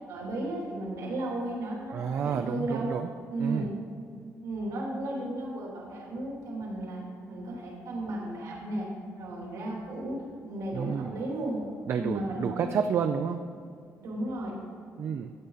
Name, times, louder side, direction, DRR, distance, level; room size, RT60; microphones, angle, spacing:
voice 1, 0.1-2.9 3.3-3.6 4.4-7.0 7.3-8.9 9.2-10.2 10.4-11.6 11.9-12.7 14.0-14.5, right 1 dB, 75° right, -3 dB, 3.0 m, -34 dB
voice 2, 1.9-3.1 3.4-3.7 10.7-11.2 11.9-13.4 15.0-15.3, right 7 dB, 50° right, 8 dB, 0.4 m, -30 dB
13.5 x 9.0 x 4.1 m, 2.3 s
cardioid pair, 170°, 6 cm